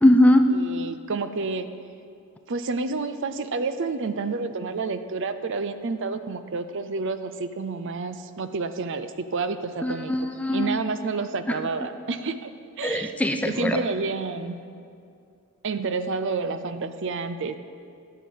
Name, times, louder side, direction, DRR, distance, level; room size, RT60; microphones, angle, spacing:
voice 1, 0.0-0.5 9.8-10.8 11.5-11.6 12.8-13.8, left 1 dB, 5° left, 6 dB, 0.4 m, -20 dB
voice 2, 0.5-1.7 2.5-10.1 10.5-12.5 12.8-13.1 13.5-14.6 15.6-17.6, right 4 dB, 55° right, 11 dB, 0.5 m, -29 dB
16.5 x 5.9 x 7.1 m, 2.4 s
head